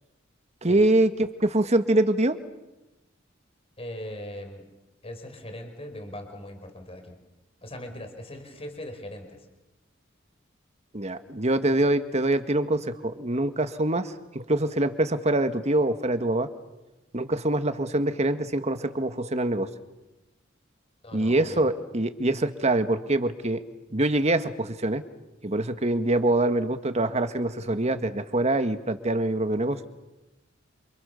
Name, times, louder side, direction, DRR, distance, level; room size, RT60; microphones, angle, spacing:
voice 1, 0.6-2.4 10.9-16.5 17.1-19.7 21.1-23.6 23.9-25.0 25.4-29.8, right 1 dB, 35° right, 9 dB, 1.7 m, -24 dB
voice 2, 3.8-4.7 5.0-7.2 7.6-9.5 21.0-21.7, left 1 dB, 30° left, 5 dB, 4.9 m, -40 dB
28.5 x 28.0 x 7.1 m, 1.0 s
head